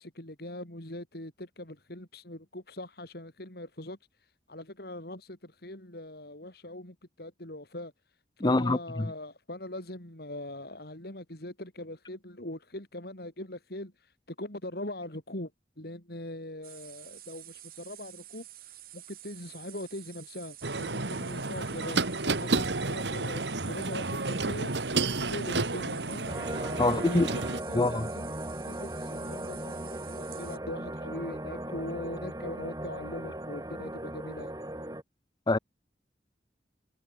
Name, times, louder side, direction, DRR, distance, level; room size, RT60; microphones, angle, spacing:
voice 1, 0.0-4.0 4.5-7.9 8.4-15.5 15.8-25.0 25.3-26.3 26.8-28.3 28.7-34.5, left 1 dB, 60° left, 4.4 m, -41 dB
voice 2, 8.4-9.1 26.8-27.3 27.7-28.1 35.5-35.6, left 2 dB, 25° left, 0.6 m, -25 dB
sound 1, 16.6-30.6, right 14 dB, 55° right, 3.8 m, -49 dB
sound 2, 20.6-27.6, right 3 dB, 75° right, 2.1 m, -31 dB
sound 3, 26.3-35.0, right 1 dB, 20° right, 5.1 m, -37 dB
head